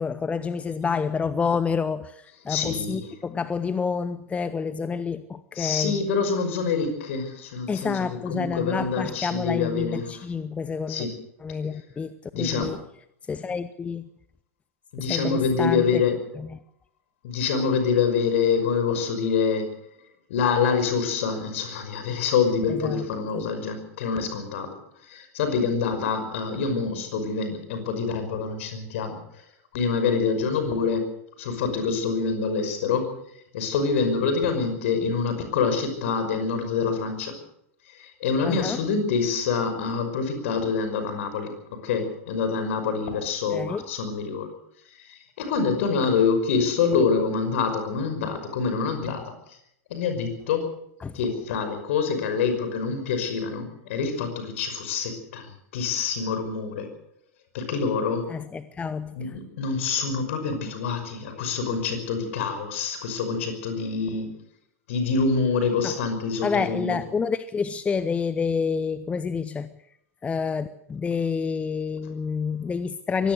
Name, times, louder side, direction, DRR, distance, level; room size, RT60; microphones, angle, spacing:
voice 1, 0.0-6.0 7.7-11.1 11.4-12.8 13.3-14.1 15.1-16.0 16.4-16.6 22.8-23.0 23.3-23.5 38.4-38.8 43.5-43.9 51.0-51.1 58.3-59.3 65.8-65.9 66.4-69.7 70.2-73.3, left 5 dB, 15° left, 14 dB, 0.9 m, -28 dB
voice 2, 2.5-3.1 5.5-10.2 10.9-11.2 12.3-12.7 14.9-16.1 17.2-19.7 20.3-24.8 25.0-29.2 29.7-31.1 31.4-33.1 33.5-37.3 37.9-44.5 45.0-49.3 49.9-50.7 51.1-56.9 57.5-58.3 59.1-64.3 64.9-67.0, left 5 dB, 55° left, 8 dB, 5.7 m, -26 dB
23.5 x 18.0 x 6.6 m, 0.75 s
figure-of-eight pair, 90°, 8 cm